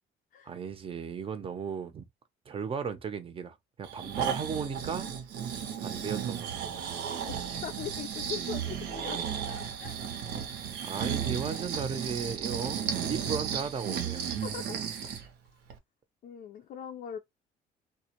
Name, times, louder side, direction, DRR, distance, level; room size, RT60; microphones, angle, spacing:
voice 1, 0.4-2.1 2.5-5.1 5.5-6.9 10.8-14.4, right 6 dB, 35° right, 0.6 m, -36 dB
Breathing, 3.8-15.3 15.7-15.8, right 8 dB, 80° right, 0.7 m, -34 dB
voice 2, 7.3-10.0 10.3-10.5 14.4-14.8 16.2-17.2, left 9 dB, 55° left, 0.4 m, -41 dB
2.2 x 2.1 x 2.9 m
cardioid pair, 110°, 17 cm